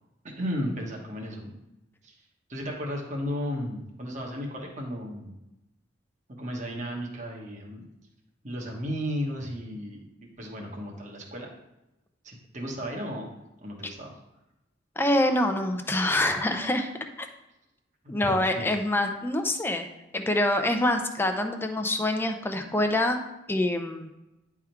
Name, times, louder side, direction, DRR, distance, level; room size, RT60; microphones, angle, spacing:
voice 1, 0.2-1.5 2.0-2.1 2.5-5.3 6.4-7.9 8.4-11.5 12.2-13.3 13.6-14.1 18.0-18.8, equal, 40° right, -1 dB, 1.3 m, -34 dB
voice 2, 15.0-16.9 18.1-19.9 20.1-23.2 23.5-24.1, left 1 dB, 10° left, 5 dB, 0.6 m, -25 dB
9.9 x 3.6 x 4.5 m, 0.94 s
head